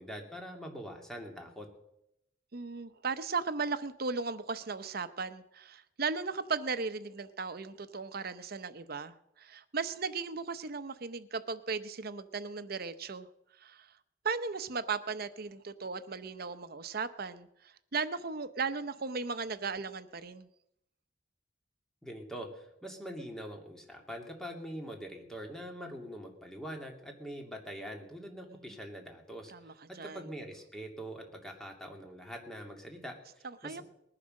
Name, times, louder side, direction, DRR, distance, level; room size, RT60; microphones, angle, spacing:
voice 1, 0.0-1.7 22.0-29.5 29.9-33.8, equal, 5° left, 2 dB, 2.5 m, -44 dB
voice 2, 2.5-13.3 13.6-13.9 14.2-20.5 28.5-28.7 29.5-30.3 33.4-33.8, right 4 dB, 55° right, 11 dB, 0.8 m, -37 dB
20.0 x 10.0 x 6.5 m, 0.83 s
head